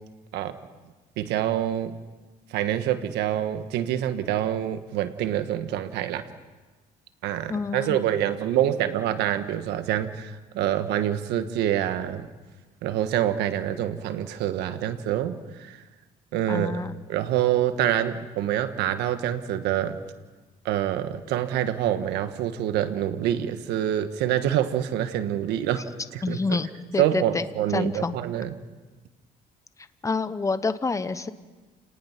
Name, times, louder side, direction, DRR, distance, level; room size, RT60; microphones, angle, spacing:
voice 1, 1.2-2.0 2.5-6.3 7.2-12.3 12.8-15.8 16.3-20.0 20.6-25.9 26.1-26.6 27.0-28.5, right 11 dB, 85° right, 10 dB, 1.4 m, -26 dB
voice 2, 7.5-8.0 16.5-17.0 26.2-27.4 27.7-28.1 30.0-31.3, left 4 dB, 20° left, 12 dB, 1.0 m, -28 dB
29.5 x 19.0 x 5.9 m, 1.2 s
cardioid pair, 110°, 17 cm